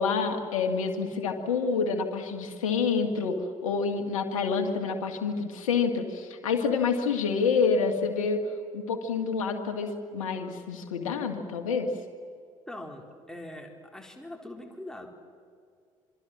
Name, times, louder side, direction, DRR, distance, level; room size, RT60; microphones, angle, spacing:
voice 1, 0.0-3.4 3.6-8.4 8.7-11.9, left 5 dB, 70° left, 5 dB, 2.0 m, -28 dB
voice 2, 12.7-15.1, left 1 dB, 5° left, 3 dB, 3.9 m, -42 dB
26.5 x 22.5 x 7.6 m, 2.2 s
figure-of-eight pair, 55°, 17 cm